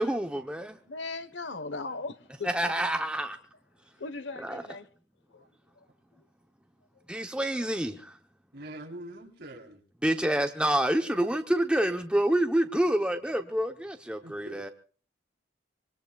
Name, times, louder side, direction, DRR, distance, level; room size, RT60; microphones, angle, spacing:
voice 1, 0.0-0.8 2.4-3.4 4.4-4.6 7.1-8.2 10.0-14.7, right 1 dB, 5° right, 0.8 m, -27 dB
voice 2, 0.9-2.7 4.0-4.9 5.3-5.5 5.8-5.9 6.1-6.3, left 3 dB, 70° left, 1.2 m, -38 dB
voice 3, 8.5-9.8 14.2-14.6, right 1 dB, 65° right, 3.6 m, -44 dB
25.5 x 23.0 x 2.3 m
head